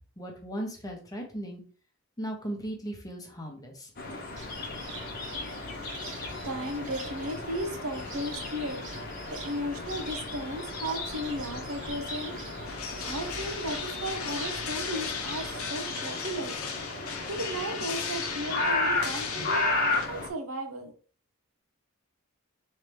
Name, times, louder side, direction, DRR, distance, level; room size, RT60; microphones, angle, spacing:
voice 1, 0.2-1.6 2.2-3.9, right 1 dB, 15° left, 1 dB, 0.9 m, -37 dB
sound 1, 4.0-20.3, left 2 dB, 45° left, 1.0 m, -34 dB
Cricket, 4.4-15.7, right 2 dB, 60° right, 1.7 m, -45 dB
voice 2, 6.0-8.9 9.3-12.4 13.0-16.6 17.3-20.9, equal, 75° right, 5 dB, 0.9 m, -35 dB
sound 2, 12.7-20.1, left 6 dB, 80° left, 0.8 m, -37 dB
4.6 x 3.2 x 3.3 m, 0.40 s
head